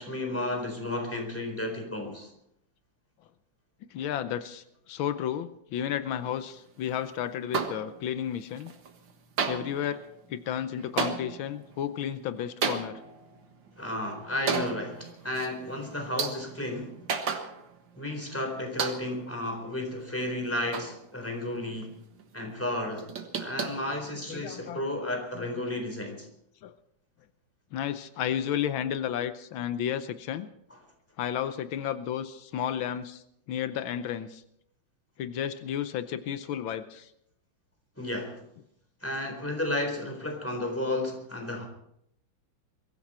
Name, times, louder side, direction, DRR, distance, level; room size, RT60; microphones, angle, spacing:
voice 1, 0.0-2.3 13.8-16.9 18.0-21.9 22.3-23.1 23.4-26.3 38.0-38.4 39.0-41.7, left 1 dB, 5° left, 3 dB, 4.0 m, -33 dB
voice 2, 3.9-8.7 9.5-10.0 10.3-13.0 24.3-24.8 25.3-25.5 26.6-26.7 27.7-30.5 31.2-33.2 33.5-34.4 35.2-37.1, left 9 dB, 85° left, 11 dB, 1.6 m, -32 dB
sound 1, 7.5-8.3 8.6-9.1 9.4-18.0 18.2-18.3 18.8-19.3 19.8-21.5 21.8-21.9 22.2-22.3 22.6-24.6, right 5 dB, 70° right, 2.1 m, -35 dB
22.5 x 14.5 x 4.4 m, 0.75 s
omnidirectional pair, 2.1 m